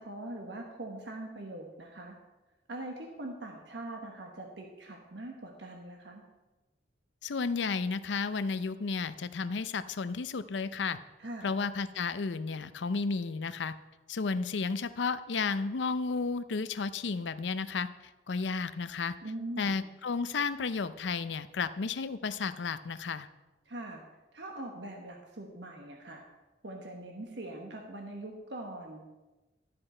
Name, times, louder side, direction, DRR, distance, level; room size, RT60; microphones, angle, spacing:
voice 1, 0.0-2.2 2.7-6.2 11.2-11.5 19.2-19.8 23.6-24.0 24.3-26.2 26.6-29.0, right 1 dB, 75° right, 2 dB, 1.3 m, -42 dB
voice 2, 7.2-11.0 11.4-13.7 14.1-17.9 18.3-19.1 19.6-23.3, left 4 dB, 80° left, 13 dB, 0.6 m, -32 dB
12.5 x 7.7 x 4.4 m, 1.1 s
head